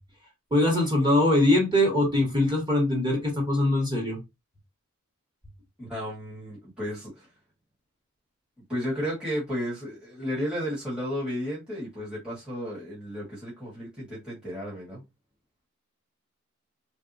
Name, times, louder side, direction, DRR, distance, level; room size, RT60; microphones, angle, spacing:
voice 1, 0.5-4.2, left 1 dB, 20° right, 1.4 m, -22 dB
voice 2, 5.8-7.3 8.7-15.0, equal, 5° right, 1.2 m, -33 dB
3.3 x 2.7 x 2.5 m
head